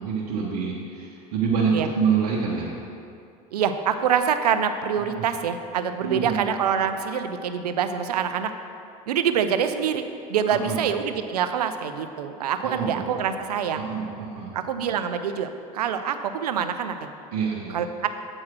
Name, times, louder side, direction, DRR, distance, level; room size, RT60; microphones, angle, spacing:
voice 1, 0.0-2.7 5.0-5.3 6.0-6.4 10.6-10.8 12.6-13.3 13.7-14.5 17.3-17.8, right 6 dB, 65° right, -5 dB, 1.2 m, -27 dB
voice 2, 3.5-8.5 9.1-10.0 10.3-13.9 14.5-16.9 17.7-18.1, right 8 dB, 90° right, 9 dB, 0.5 m, -25 dB
8.6 x 4.7 x 6.1 m, 2.5 s
hypercardioid pair, 85°, 20 cm